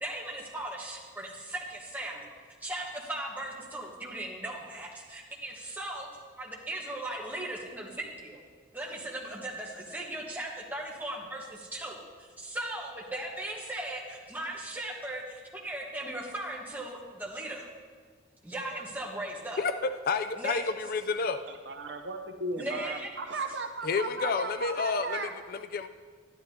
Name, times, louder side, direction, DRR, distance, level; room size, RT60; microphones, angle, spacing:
voice 1, 0.0-2.3 2.6-6.1 6.4-8.4 8.7-12.0 12.4-17.7 18.4-19.6 20.3-20.6 22.6-23.1, right 1 dB, 10° right, -2 dB, 1.3 m, -38 dB
voice 2, 20.1-21.4 23.8-25.9, left 5 dB, 45° left, 10 dB, 0.3 m, -30 dB
voice 3, 21.5-25.3, right 3 dB, 60° right, 5 dB, 0.7 m, -36 dB
11.5 x 11.0 x 2.8 m, 1.5 s
head